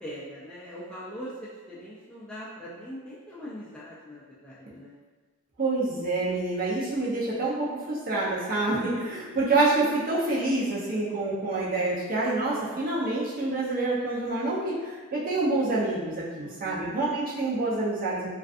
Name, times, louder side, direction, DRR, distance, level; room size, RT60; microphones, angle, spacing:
voice 1, 0.0-5.0 16.4-16.9, equal, 5° left, -10 dB, 0.3 m, -41 dB
voice 2, 5.6-18.3, right 2 dB, 40° right, -7 dB, 0.6 m, -27 dB
2.5 x 2.4 x 2.4 m, 1.4 s
head